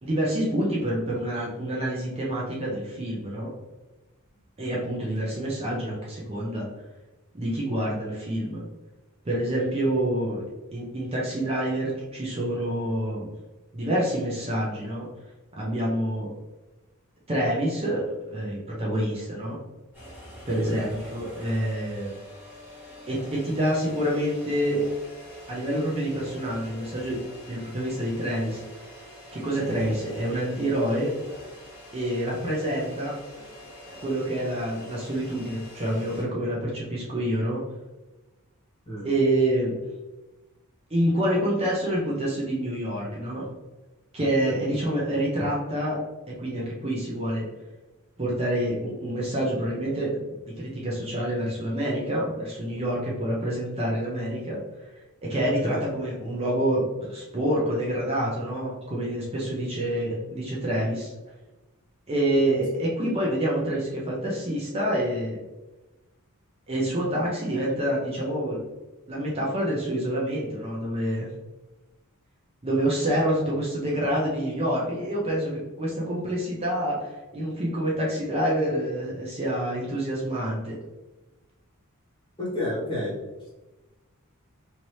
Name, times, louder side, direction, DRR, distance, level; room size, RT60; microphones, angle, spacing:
voice 1, 0.0-3.5 4.6-6.7 7.3-8.6 9.2-10.4 10.7-13.3 13.7-15.0 15.6-16.3 17.3-19.6 20.5-22.2 23.1-24.8 25.5-27.2 27.5-28.6 29.3-31.1 31.9-33.1 34.0-37.6 39.0-39.8 40.9-43.4 44.1-46.0 46.4-47.5 48.2-50.2 50.6-54.6 55.3-61.1 62.1-65.4 66.7-68.6 69.1-71.3 72.6-75.5 75.8-80.7, right 1 dB, 25° right, -5 dB, 0.6 m, -27 dB
sound 1, 19.9-36.2, equal, 10° right, 1.4 m, -45 dB
voice 2, 55.4-55.8 82.4-83.1, left 1 dB, 25° left, -8 dB, 1.4 m, -30 dB
2.9 x 2.8 x 3.1 m, 1.1 s
head